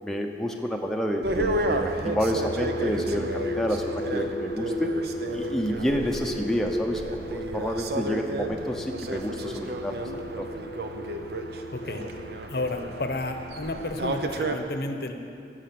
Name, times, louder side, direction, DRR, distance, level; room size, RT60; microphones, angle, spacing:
voice 1, 0.0-4.9 5.3-7.0 7.3-9.9 10.4-10.5, equal, ahead, 1 dB, 0.7 m, -29 dB
sound 1, 1.2-14.5, right 2 dB, 65° right, 0.8 m, -32 dB
sound 2, 2.4-14.1, left 1 dB, 30° left, 0.8 m, -37 dB
voice 2, 11.7-12.0 12.5-15.1, left 2 dB, 60° left, 6 dB, 0.8 m, -31 dB
16.0 x 6.4 x 7.6 m, 2.6 s
head